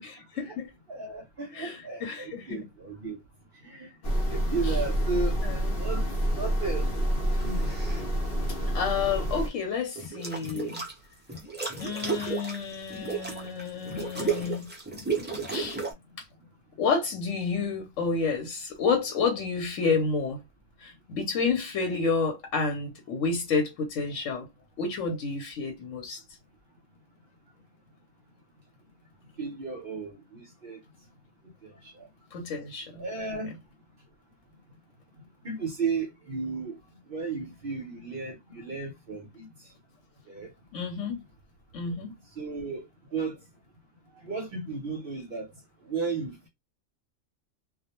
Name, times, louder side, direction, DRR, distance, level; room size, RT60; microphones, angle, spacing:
voice 1, 0.4-0.7 1.5-2.6 4.6-4.8 5.4-5.7 8.7-10.8 11.8-14.7 15.5-15.8 16.8-20.4 20.8-24.5 24.8-26.2 32.3-33.0 40.7-41.2 41.7-42.1, left 5 dB, 80° left, 1.0 m, -30 dB
voice 2, 0.9-3.2 3.6-3.9 4.3-5.3 5.8-6.1 6.4-6.9 7.4-7.7 29.4-30.8 31.6-32.1 33.0-33.5 35.4-36.8 37.1-39.5 40.3-40.5 42.4-42.9 43.1-43.4 44.2-45.5 45.9-46.5, right 4 dB, 55° right, 0.8 m, -34 dB
sound 1, 4.0-9.5, right 1 dB, 55° left, 0.8 m, -28 dB
sound 2, 7.3-8.0 10.0-10.9 11.3-15.9, right 4 dB, 15° right, 0.3 m, -33 dB
2.2 x 2.1 x 2.8 m
omnidirectional pair, 1.3 m